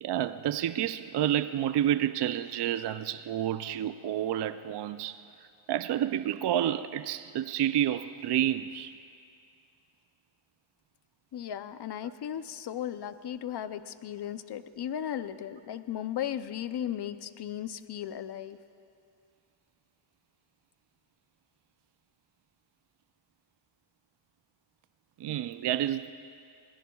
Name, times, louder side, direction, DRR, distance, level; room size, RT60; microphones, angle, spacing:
voice 1, 0.0-9.0 25.2-26.1, right 11 dB, 55° right, 0.5 m, -29 dB
voice 2, 11.3-18.6, left 10 dB, 55° left, 0.6 m, -36 dB
22.5 x 17.5 x 2.3 m
cardioid pair, 75°, 50 cm